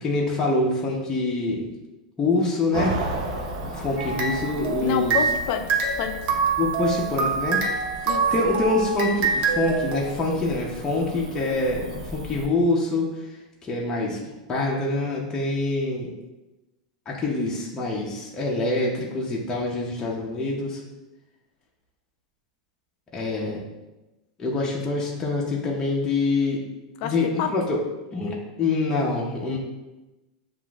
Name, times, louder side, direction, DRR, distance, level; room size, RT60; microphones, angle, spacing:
voice 1, 0.0-1.7 2.2-2.9 3.7-5.2 6.6-7.6 8.3-13.1 13.7-14.2 14.5-16.1 17.1-20.8 23.1-23.6 24.4-26.6 27.0-27.8 28.1-29.6, left 2 dB, 15° left, -4 dB, 0.7 m, -25 dB
Cricket / Motor vehicle (road), 2.7-12.5, right 1 dB, 70° right, 0.8 m, -35 dB
sound 1, 4.0-5.4 5.7-10.0, right 5 dB, 40° right, 0.7 m, -25 dB
voice 2, 4.8-5.7 6.0-6.3 8.0-8.3 27.0-27.5, left 8 dB, 50° left, 6 dB, 0.4 m, -28 dB
7.1 x 2.5 x 2.4 m, 1.1 s
supercardioid pair, 130°, 4 cm